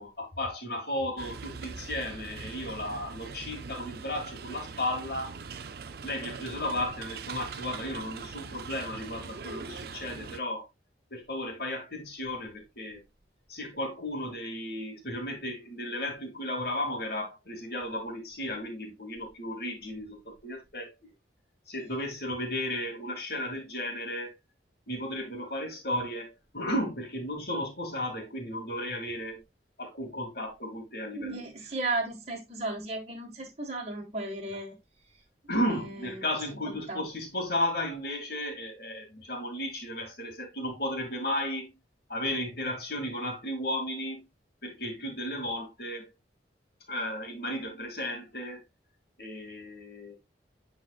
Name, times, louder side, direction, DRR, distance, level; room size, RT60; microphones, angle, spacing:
voice 1, 0.0-5.3 6.0-10.7 11.1-13.0 13.5-20.9 21.7-24.4 24.9-29.4 29.8-31.4 35.5-41.7 42.1-44.3 44.6-46.1 46.9-48.6 49.2-50.1, left 1 dB, 55° left, 2.4 m, -34 dB
sound 1, 1.2-10.4, right 5 dB, 55° right, 0.5 m, -42 dB
voice 2, 31.2-34.8 36.1-36.2 36.7-37.0, right 2 dB, 35° right, 1.6 m, -34 dB
9.5 x 4.2 x 2.4 m
head